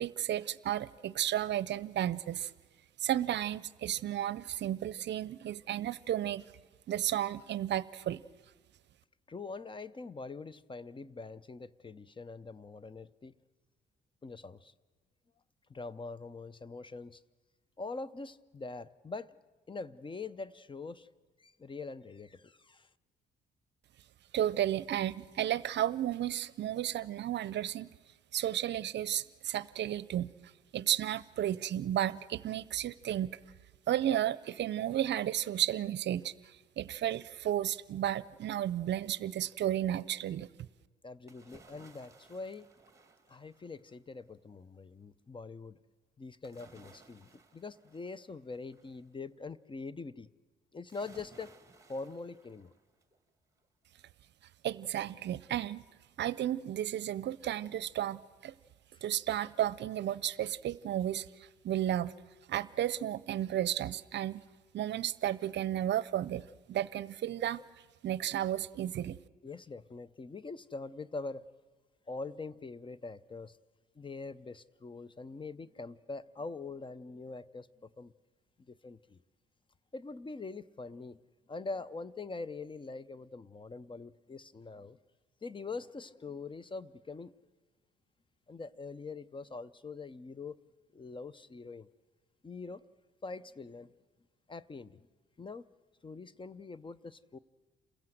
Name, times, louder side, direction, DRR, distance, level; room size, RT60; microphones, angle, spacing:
voice 1, 0.0-2.5 3.0-6.4 6.9-8.2 24.3-27.9 28.3-30.3 30.7-33.3 33.9-40.5 54.6-55.8 56.2-58.5 59.0-61.3 61.6-62.1 62.5-64.4 64.7-66.4 66.7-67.6 68.0-69.2, right 11 dB, 65° right, 18 dB, 0.6 m, -33 dB
voice 2, 9.3-13.3 14.2-14.7 15.7-17.2 17.8-19.4 19.7-21.1 21.4-22.9 41.0-42.7 43.3-45.8 46.2-50.3 50.7-51.5 51.9-52.7 58.9-59.0 69.4-71.5 72.1-73.6 74.0-78.1 78.7-79.2 79.9-81.2 81.5-85.0 85.4-87.3 88.5-90.6 90.9-91.9 92.4-92.8 93.2-93.9 94.5-95.1 95.4-95.7 96.0-97.4, left 3 dB, 25° left, 18 dB, 0.6 m, -43 dB
sound 1, 41.3-44.1 46.4-49.1 50.9-53.2 53.6-53.7, right 3 dB, 15° right, 2.2 m, -60 dB
28.0 x 16.0 x 7.8 m, 1.3 s
cardioid pair, 90°, 20 cm